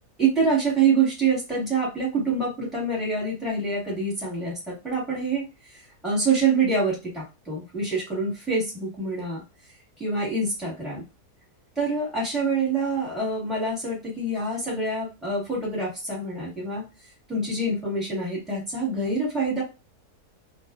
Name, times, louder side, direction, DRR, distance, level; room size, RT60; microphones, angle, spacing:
voice 1, 0.2-5.5 6.0-9.4 10.0-11.0 11.8-16.8 17.3-19.6, right 3 dB, ahead, -6 dB, 1.2 m, -26 dB
2.5 x 2.4 x 2.4 m, 0.27 s
omnidirectional pair, 1.7 m